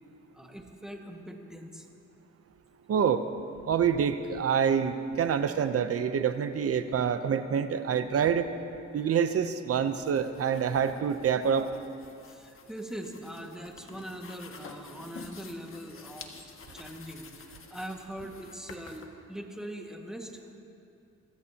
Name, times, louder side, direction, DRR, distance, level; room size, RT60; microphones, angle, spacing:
voice 1, 0.3-1.9 12.3-20.4, right 1 dB, ahead, 1 dB, 1.9 m, -42 dB
voice 2, 2.9-3.3 3.7-8.5 8.9-11.7, right 7 dB, 50° right, 10 dB, 0.8 m, -26 dB
sound 1, 9.8-19.1, left 5 dB, 45° left, 1.4 m, -50 dB
25.0 x 15.5 x 2.9 m, 2.6 s
cardioid pair, 90°, 30 cm